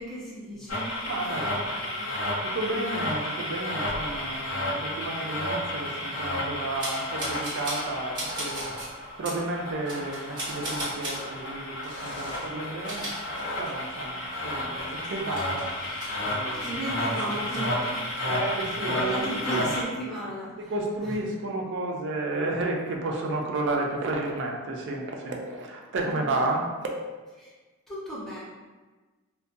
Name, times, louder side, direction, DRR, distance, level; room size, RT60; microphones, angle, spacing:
voice 1, 0.0-1.0 1.3-2.2 16.4-18.3 18.9-20.7 21.0-21.1 26.1-26.5 27.4-27.5 27.9-28.4, right 1 dB, ahead, -8 dB, 0.6 m, -36 dB
sound 1, 0.7-19.8, left 1 dB, 70° left, 0.7 m, -32 dB
voice 2, 1.1-1.6 2.4-13.2 13.6-15.7 16.2-17.3 18.2-19.7 20.6-26.9, right 2 dB, 55° right, 0 dB, 0.4 m, -32 dB
sound 2, 6.8-7.9 8.1-8.9 9.2-9.4 9.9-11.2 11.8-12.4 12.7-13.9 14.3-14.4 14.8-16.7 17.0-17.6, right 1 dB, 20° right, 1.1 m, -37 dB
2.5 x 2.2 x 2.5 m, 1.3 s
head